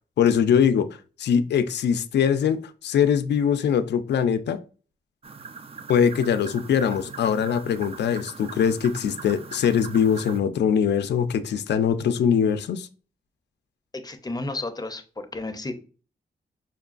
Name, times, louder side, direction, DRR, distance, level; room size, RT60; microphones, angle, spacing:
voice 1, 0.2-0.9 1.2-4.6 5.9-12.9, left 7 dB, 80° left, 0.4 m, -22 dB
sound 1, 5.2-10.4, right 5 dB, 35° right, 0.3 m, -41 dB
voice 2, 13.9-15.7, left 2 dB, 20° left, 0.5 m, -32 dB
5.7 x 2.2 x 2.4 m
cardioid pair, 90°, 18 cm